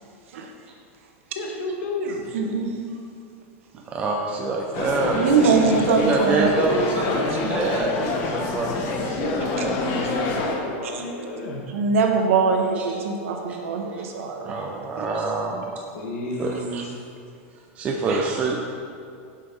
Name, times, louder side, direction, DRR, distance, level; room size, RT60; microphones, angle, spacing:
voice 1, 1.3-2.3 5.5-5.8 9.4-11.6 15.0-15.2 15.9-17.0, left 1 dB, 80° left, -1 dB, 1.6 m, -32 dB
voice 2, 2.3-2.7 5.1-7.6 9.6-9.7 10.8-11.0 11.7-14.5 15.0-15.1 16.7-16.8 18.1-18.2, right 4 dB, 80° right, 3 dB, 1.1 m, -23 dB
voice 3, 3.9-5.2 5.9-7.1 7.5-9.8 12.8-13.0 13.9-14.0 14.4-15.8 16.4-16.6 17.8-18.6, right 3 dB, 20° right, 0 dB, 0.4 m, -26 dB
sound 1, 4.7-10.6, left 3 dB, 35° left, 0.9 m, -27 dB
7.3 x 6.2 x 4.6 m, 2.4 s
supercardioid pair, 170°, 7 cm